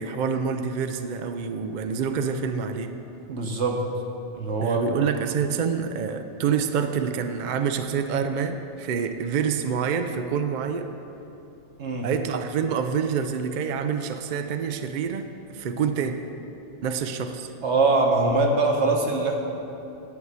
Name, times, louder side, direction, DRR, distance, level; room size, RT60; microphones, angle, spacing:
voice 1, 0.0-2.9 4.6-10.9 12.0-16.2 16.8-17.5, right 6 dB, 55° right, 7 dB, 0.5 m, -27 dB
voice 2, 3.3-3.8 4.4-4.8 11.8-12.1 17.6-19.4, right 3 dB, 70° right, 1 dB, 1.4 m, -22 dB
10.5 x 4.7 x 8.1 m, 2.9 s
omnidirectional pair, 1.2 m